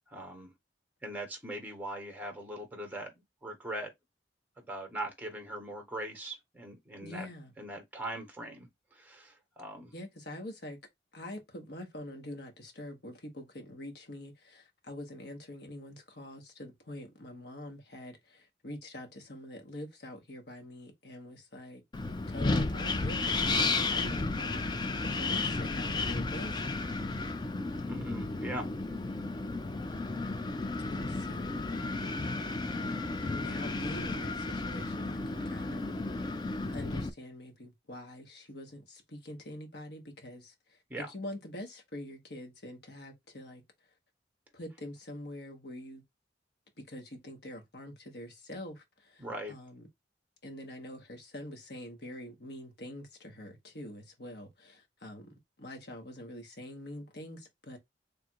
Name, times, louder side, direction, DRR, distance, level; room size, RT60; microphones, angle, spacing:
voice 1, 0.1-0.5 1.0-3.9 4.6-7.3 7.6-9.9 27.9-28.7 40.9-41.1 49.2-49.5, right 1 dB, 10° right, 1.1 m, -41 dB
voice 2, 7.0-7.5 9.9-10.8 11.1-21.8 22.3-26.8 30.9-32.2 33.2-36.2 36.7-43.6 44.5-46.0 46.8-49.2 49.5-49.9 50.4-57.8, left 1 dB, 60° left, 1.2 m, -45 dB
Wind, 21.9-37.1, left 3 dB, 25° left, 0.4 m, -33 dB
3.4 x 2.4 x 4.4 m
head